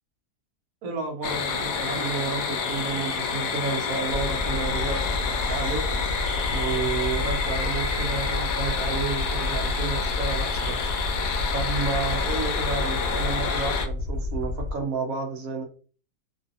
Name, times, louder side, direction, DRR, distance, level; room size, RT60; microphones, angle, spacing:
voice 1, 0.8-5.8 6.5-11.0 11.5-15.6, right 4 dB, 65° right, 3 dB, 1.1 m, -31 dB
sound 1, 1.2-13.9, left 5 dB, 70° left, 1.0 m, -29 dB
Aircraft, 4.1-14.7, left 2 dB, 45° right, 1.2 m, -30 dB
3.0 x 2.6 x 2.5 m, 0.40 s
omnidirectional pair, 1.7 m